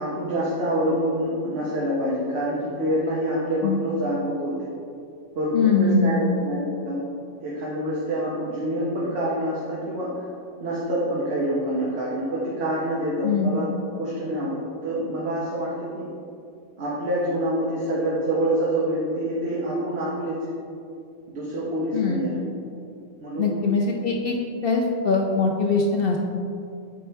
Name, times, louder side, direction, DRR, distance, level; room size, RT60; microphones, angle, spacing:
voice 1, 0.0-4.7 5.3-7.0 7.4-10.2 10.6-13.7 14.0-16.1 16.8-20.6 21.3-22.4 23.2-23.5, right 1 dB, 50° right, -6 dB, 1.1 m, -26 dB
voice 2, 5.5-6.2 13.2-13.5 21.9-22.2 23.4-24.4 24.6-26.2, left 4 dB, 65° left, 1 dB, 0.5 m, -22 dB
7.6 x 4.3 x 3.4 m, 2.5 s
omnidirectional pair, 1.4 m